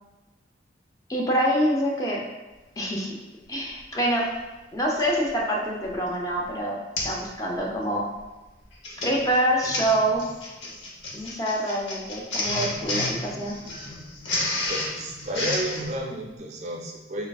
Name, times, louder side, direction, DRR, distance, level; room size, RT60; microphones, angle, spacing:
voice 1, 1.1-2.2 2.8-3.1 3.5-4.3 4.7-8.0 9.0-10.2 11.1-13.5, equal, 20° left, -2 dB, 0.5 m, -26 dB
Printer, 3.8-3.9 5.0-5.3 5.8-6.1 6.3-6.5 7.0-7.2 7.6-7.8 8.6-15.9, left 2 dB, 85° left, 0.8 m, -31 dB
voice 2, 14.7-17.3, right 1 dB, 40° right, 1 dB, 0.5 m, -31 dB
4.3 x 3.4 x 2.3 m, 1.1 s
head